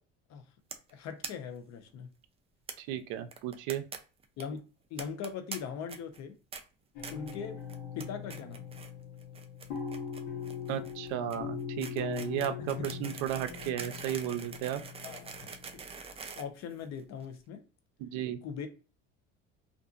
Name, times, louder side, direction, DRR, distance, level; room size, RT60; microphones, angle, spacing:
sound 1, 0.7-0.9 1.2-1.3 1.6-1.7 1.9-2.0 2.7-2.8 3.3-4.0 4.2-4.4 5.0-5.6 5.9-6.2 6.5-6.6 7.0-7.4 7.7-8.0 8.3-8.9 9.2-17.2, right 5 dB, 20° right, 0.4 m, -44 dB
voice 1, 0.9-2.1 4.4-4.6 4.9-6.3 7.1-7.6 7.9-8.6 12.6-12.7 15.0-15.8 16.4-17.6 18.4-18.7, left 7 dB, 60° left, 0.7 m, -40 dB
voice 2, 2.8-3.8 10.7-14.8 18.0-18.4, right 11 dB, 75° right, 0.5 m, -34 dB
sound 2, 7.0-16.0, left 7 dB, 80° left, 1.1 m, -41 dB
2.5 x 2.5 x 2.4 m
supercardioid pair, 100°, 31 cm